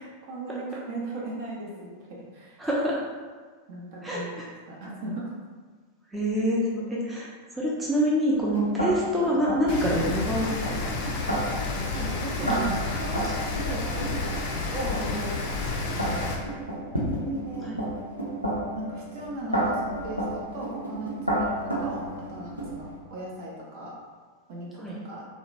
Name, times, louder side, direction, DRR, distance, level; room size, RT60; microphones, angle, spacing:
voice 1, 0.0-2.6 3.7-5.3 11.9-14.1 14.7-16.3 17.5-17.7 18.7-23.9 24.5-25.3, right 2 dB, 50° right, -4 dB, 0.7 m, -37 dB
voice 2, 2.6-3.0 4.0-4.5 6.1-11.2 11.8-12.1 12.4-12.8 15.0-15.1 16.9-17.8 24.8-25.0, equal, 10° right, -5 dB, 0.4 m, -27 dB
sound 1, 8.3-23.0, right 1 dB, 90° right, 0.5 m, -32 dB
Rain, 9.7-16.3, left 3 dB, 50° left, 0.4 m, -30 dB
2.8 x 2.1 x 2.5 m, 1.5 s
figure-of-eight pair, 90°, 0 cm